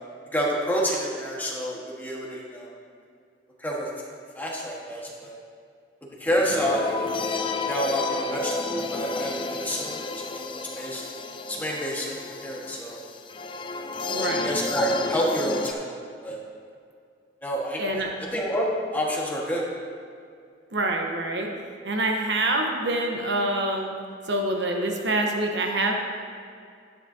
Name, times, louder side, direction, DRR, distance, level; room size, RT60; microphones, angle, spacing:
voice 1, 0.3-2.7 3.6-3.9 4.3-5.3 6.2-7.3 7.7-11.0 11.5-13.0 13.8-13.9 14.4-15.8 16.2-16.4 17.4-18.0 18.3-19.6, equal, 10° left, -4 dB, 1.4 m, -28 dB
sound 1, 6.5-15.7, left 3 dB, 30° left, 0.4 m, -31 dB
voice 2, 14.1-14.5 17.8-18.1 20.7-21.5 21.8-23.9 24.3-26.0, right 2 dB, 75° right, 2 dB, 1.0 m, -26 dB
11.0 x 10.0 x 2.8 m, 2.2 s
head